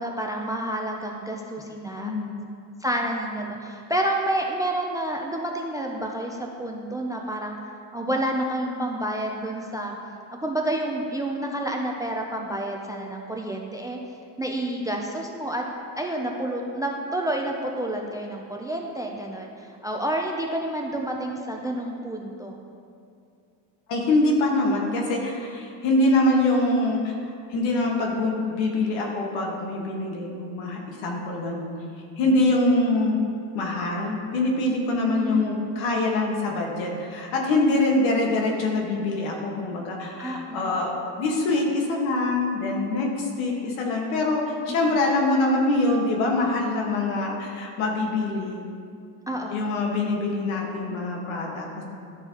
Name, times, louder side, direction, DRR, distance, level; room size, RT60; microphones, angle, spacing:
voice 1, 0.0-2.1 2.8-7.6 7.9-10.0 10.3-14.0 14.4-15.6 16.0-22.6 35.1-35.6 40.2-40.7 44.7-45.0 49.3-49.6, right 1 dB, 10° right, 1 dB, 0.3 m, -29 dB
voice 2, 2.0-2.3 23.9-31.7 32.2-33.3 33.5-48.6 49.5-51.8, left 2 dB, 75° left, 0 dB, 1.5 m, -24 dB
12.5 x 4.5 x 2.9 m, 2.4 s
cardioid pair, 110°, 46 cm